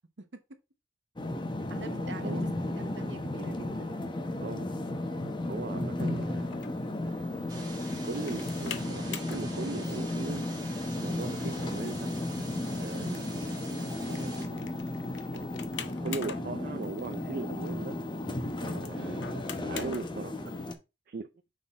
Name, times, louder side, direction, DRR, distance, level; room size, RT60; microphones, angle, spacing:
sound 1, 1.2-20.7, left 1 dB, 25° left, 0.8 m, -34 dB
voice 1, 1.7-2.4 2.8-3.9 13.0-13.2 18.9-19.3, right 3 dB, 65° right, 1.0 m, -44 dB
voice 2, 4.3-4.7 5.5-7.7 8.0-10.6 11.0-12.1 12.8-13.6 14.1-14.7 15.3-18.0 18.6-20.5 21.1-21.3, right 4 dB, 50° right, 0.4 m, -40 dB
sound 2, 6.0-20.7, left 8 dB, 75° left, 0.7 m, -47 dB
sound 3, 7.5-14.5, right 3 dB, 20° right, 1.4 m, -47 dB
6.2 x 3.8 x 4.2 m
head